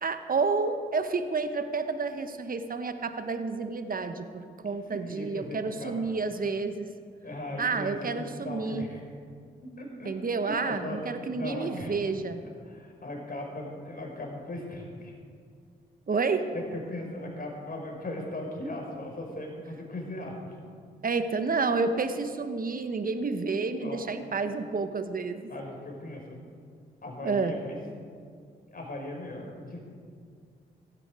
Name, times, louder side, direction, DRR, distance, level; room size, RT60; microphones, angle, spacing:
voice 1, 0.0-6.9 7.6-8.9 10.0-12.4 16.1-16.5 21.0-25.5 27.2-27.5, right 4 dB, 40° right, 9 dB, 1.3 m, -30 dB
voice 2, 4.7-5.9 7.2-9.0 9.6-10.1 10.4-11.0 11.3-12.0 12.6-15.1 16.5-20.4 23.8-24.0 25.5-26.4 27.0-27.8 28.7-29.8, left 1 dB, 45° left, 0 dB, 5.2 m, -38 dB
16.0 x 14.5 x 5.0 m, 2.2 s
hypercardioid pair, 40°, 21 cm